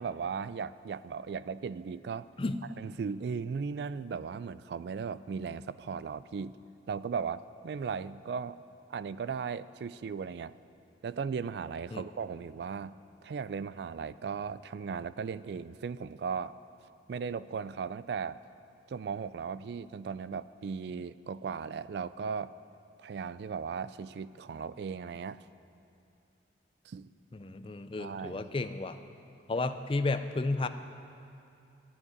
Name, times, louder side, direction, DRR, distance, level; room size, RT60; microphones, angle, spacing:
voice 1, 0.0-2.3 2.8-6.5 6.9-8.6 8.9-10.6 11.0-13.0 13.2-16.5 17.1-18.4 18.9-22.5 23.0-25.4 26.9-27.1 28.0-28.5, right 6 dB, 65° right, 16 dB, 0.3 m, -37 dB
voice 2, 27.3-29.0 29.5-30.7, left 2 dB, 30° left, 10 dB, 0.4 m, -32 dB
10.5 x 7.3 x 9.7 m, 2.6 s
head